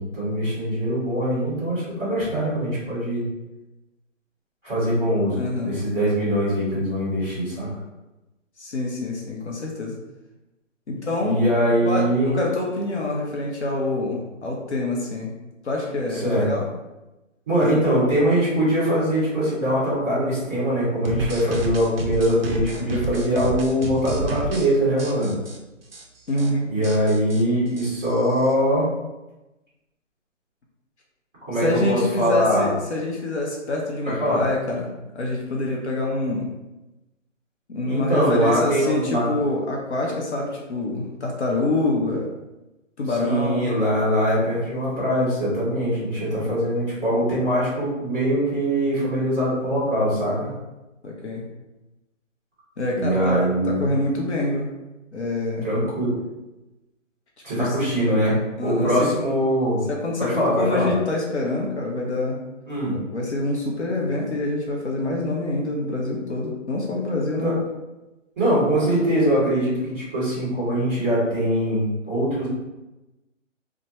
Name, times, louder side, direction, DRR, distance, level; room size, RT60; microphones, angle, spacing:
voice 1, 0.0-3.2 4.6-7.7 11.2-12.4 16.1-16.5 17.5-25.3 26.7-28.9 31.4-32.7 34.2-34.4 37.8-39.3 43.1-50.5 52.9-53.9 55.6-56.1 57.4-58.3 58.6-59.8 60.2-60.9 62.7-63.0 67.4-67.5 68.3-72.5, equal, 5° right, -12 dB, 1.2 m, -22 dB
voice 2, 5.3-5.7 8.6-10.0 10.9-11.4 11.8-15.3 15.6-16.7 17.6-17.8 26.3-26.7 31.6-36.5 37.7-42.3 43.0-43.7 51.0-51.4 52.8-54.7 55.1-55.7 57.6-57.9 58.6-59.1 59.9-62.4 63.1-67.5, left 2 dB, 60° left, -2 dB, 0.6 m, -26 dB
sound 1, 21.1-24.7 25.0-25.6 25.9-26.0 26.3-26.5 26.8-28.5, right 1 dB, 50° right, 0.5 m, -30 dB
2.8 x 2.1 x 3.0 m, 1.0 s
hypercardioid pair, 175°, 38 cm